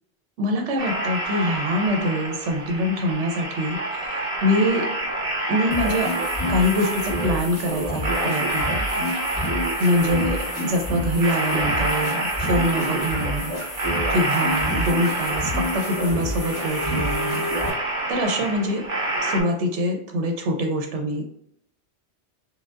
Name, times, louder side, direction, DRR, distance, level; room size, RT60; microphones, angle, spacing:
voice 1, 0.4-3.8 4.4-4.9 5.5-6.1 6.5-9.1 9.8-13.5 14.1-17.5 18.1-18.8 19.2-21.2, equal, 80° right, 3 dB, 1.0 m, -24 dB
sound 1, 0.8-19.4, right 2 dB, 55° right, 1.0 m, -28 dB
sound 2, 5.7-17.7, left 1 dB, 20° left, 0.9 m, -29 dB
4.8 x 2.2 x 2.4 m, 0.72 s
omnidirectional pair, 1.2 m